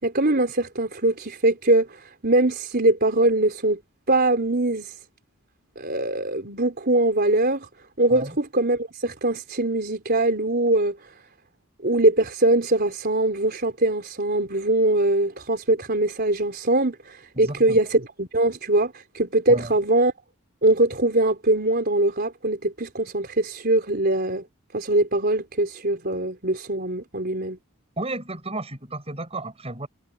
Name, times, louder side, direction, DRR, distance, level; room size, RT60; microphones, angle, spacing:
voice 1, 0.0-3.8 4.1-4.9 5.8-7.7 8.0-11.0 11.8-20.1 20.6-24.4 24.7-27.6, right 2 dB, 45° right, 4.5 m, -22 dB
voice 2, 17.3-17.8 19.5-19.7 28.0-29.9, right 2 dB, 30° right, 6.2 m, -33 dB
head